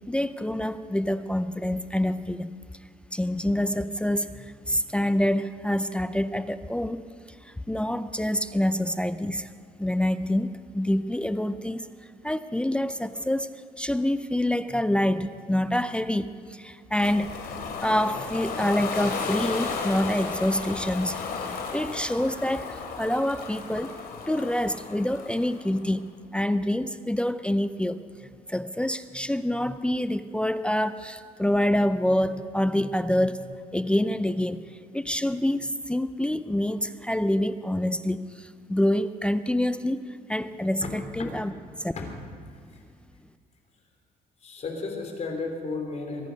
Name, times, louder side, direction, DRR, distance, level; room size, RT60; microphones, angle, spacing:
voice 1, 0.1-2.5 3.1-7.0 7.4-9.5 9.8-11.9 12.2-17.4 17.8-21.5 21.7-23.9 24.3-28.0 28.5-34.6 34.9-40.0 40.3-41.5 41.8-41.9, left 1 dB, 5° left, 12 dB, 0.5 m, -26 dB
Ocean, 17.0-25.8, left 5 dB, 65° left, 2.9 m, -34 dB
voice 2, 42.5-42.8 44.4-46.3, left 3 dB, 40° left, 3 dB, 3.3 m, -34 dB
23.0 x 10.5 x 5.3 m, 2.2 s
cardioid pair, 110°, 17 cm